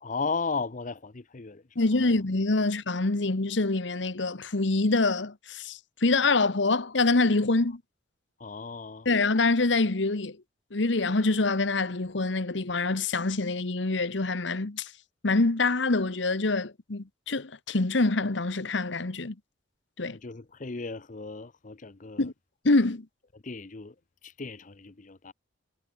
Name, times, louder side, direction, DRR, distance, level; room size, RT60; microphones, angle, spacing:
voice 1, 0.0-1.6 2.0-2.1 8.4-9.1 20.1-22.3 23.4-23.9 24.2-25.3, left 4 dB, 40° left, 0.8 m, -35 dB
voice 2, 1.7-7.8 9.0-10.4 10.7-14.9 15.2-19.3 20.0-20.2 22.2-22.3 22.6-23.1, left 3 dB, 70° left, 1.2 m, -25 dB
head